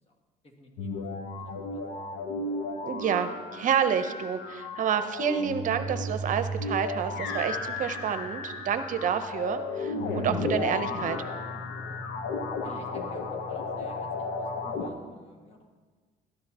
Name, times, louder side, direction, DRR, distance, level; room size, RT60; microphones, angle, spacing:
voice 1, 0.4-0.9 1.6-1.8 11.9-12.0 12.6-15.7, left 2 dB, 35° left, 1 dB, 1.8 m, -50 dB
sound 1, 0.8-14.9, left 2 dB, 80° left, 1.0 m, -34 dB
voice 2, 2.8-11.2, right 8 dB, 50° right, 10 dB, 0.7 m, -29 dB
13.0 x 12.0 x 2.9 m, 1.4 s
cardioid pair, 110°, 17 cm